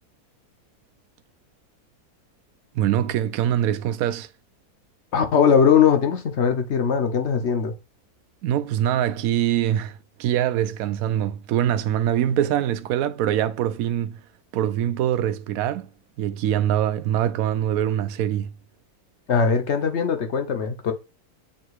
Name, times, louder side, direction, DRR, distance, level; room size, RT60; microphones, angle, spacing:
voice 1, 2.7-4.3 8.4-14.2 14.5-15.9 16.2-18.5, right 11 dB, 70° right, 1.0 m, -23 dB
voice 2, 5.1-7.7 19.3-20.9, left 7 dB, 55° left, 1.0 m, -20 dB
7.3 x 2.8 x 4.7 m
omnidirectional pair, 1.6 m